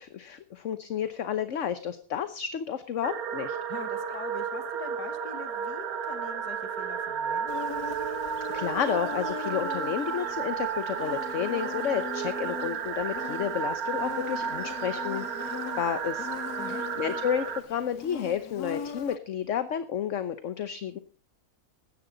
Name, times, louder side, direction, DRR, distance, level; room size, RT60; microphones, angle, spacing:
voice 1, 0.0-3.6 8.5-15.3 15.8-16.3 16.7-21.0, left 8 dB, 55° left, 11 dB, 1.1 m, -31 dB
sound 1, 3.0-17.6, right 7 dB, 65° right, 1.5 m, -33 dB
voice 2, 3.7-7.5 16.6-16.9, left 6 dB, 85° left, 9 dB, 2.3 m, -43 dB
Insect, 7.5-19.2, left 8 dB, 70° left, 1.4 m, -40 dB
16.5 x 13.0 x 3.9 m, 0.37 s
omnidirectional pair, 1.7 m